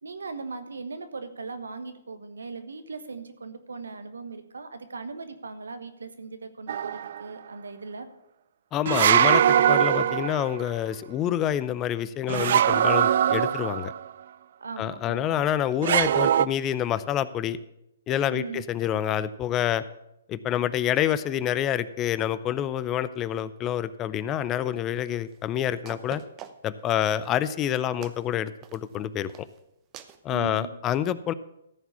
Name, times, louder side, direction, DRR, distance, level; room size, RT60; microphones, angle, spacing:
voice 1, 0.0-8.1 14.6-15.4 18.3-18.6 30.3-30.7, right 4 dB, 80° right, 9 dB, 1.2 m, -38 dB
sound 1, 6.7-7.2 8.9-10.6 12.3-14.0 15.8-16.5, right 9 dB, 55° right, 0.3 m, -22 dB
voice 2, 8.7-13.9 14.8-17.6 18.1-19.8 20.3-26.2 26.6-29.5 30.2-31.3, left 10 dB, 25° left, 16 dB, 0.4 m, -27 dB
sound 2, 25.3-25.4 25.9-26.8 27.2-27.5 28.0-28.3 28.6-29.0 29.3-29.6 29.9-30.2, right 10 dB, 25° right, 0.8 m, -44 dB
14.0 x 4.7 x 7.0 m, 0.82 s
hypercardioid pair, 135°, 0 cm